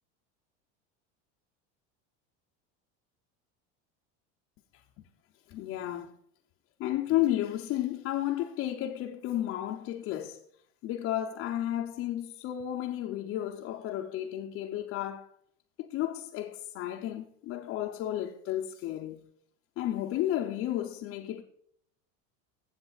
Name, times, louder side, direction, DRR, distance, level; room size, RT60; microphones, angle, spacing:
voice 1, 4.7-5.0 5.5-6.2 6.8-10.4 10.8-15.3 15.8-19.2 19.8-21.4, left 13 dB, 40° left, 0.6 m, -32 dB
14.0 x 7.9 x 2.4 m
supercardioid pair, 145°, 34 cm